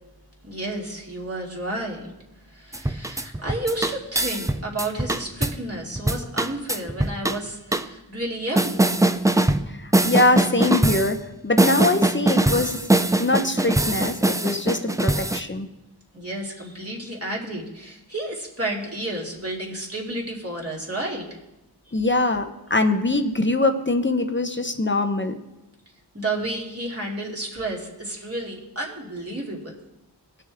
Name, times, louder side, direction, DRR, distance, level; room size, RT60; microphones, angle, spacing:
voice 1, 0.4-2.1 2.5-9.0 16.1-21.2 22.0-22.1 26.1-29.8, right 1 dB, 35° right, -3 dB, 2.5 m, -31 dB
sound 1, 2.7-5.6 6.0-7.4 7.7-7.8 8.6-9.7 9.9-11.1 11.6-15.4, right 1 dB, 10° right, 0.4 m, -21 dB
voice 2, 9.8-11.2 11.4-12.8 13.2-15.7 21.9-25.3, left 2 dB, 25° left, 6 dB, 0.8 m, -23 dB
19.0 x 6.5 x 3.5 m, 0.98 s
wide cardioid pair, 60°, 42 cm